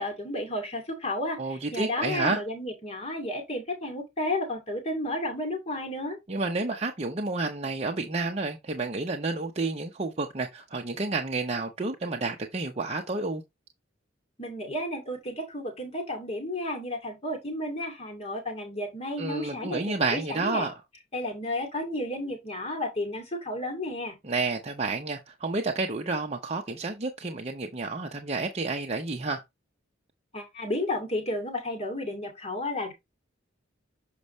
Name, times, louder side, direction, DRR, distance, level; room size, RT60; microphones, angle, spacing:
voice 1, 0.0-6.2 14.4-20.7 21.1-24.2 30.3-32.9, left 1 dB, 35° left, 2.3 m, -32 dB
voice 2, 1.4-2.4 6.3-13.4 19.2-20.7 24.2-29.4, right 3 dB, 35° right, 0.8 m, -30 dB
6.8 x 5.3 x 3.1 m
head